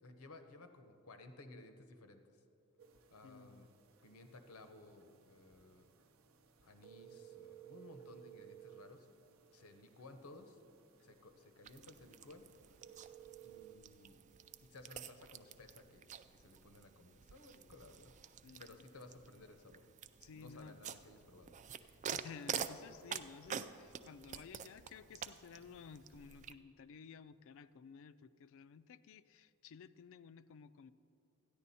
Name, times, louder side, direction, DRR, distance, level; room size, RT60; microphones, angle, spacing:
voice 1, 0.0-2.4 3.1-3.7 4.0-5.8 6.6-9.1 9.5-10.6 11.0-12.4 13.4-14.2 14.6-18.1 18.6-19.9 20.3-21.5, left 2 dB, 85° left, 7 dB, 0.9 m, -57 dB
sound 1, 2.8-13.7, right 10 dB, 65° right, 0.7 m, -60 dB
voice 2, 3.2-3.7 18.4-18.8 20.2-20.8 21.8-30.9, left 6 dB, 65° left, 15 dB, 0.3 m, -55 dB
sound 2, 11.6-26.5, right 8 dB, 35° right, 0.3 m, -48 dB
13.5 x 9.9 x 4.2 m, 2.6 s
head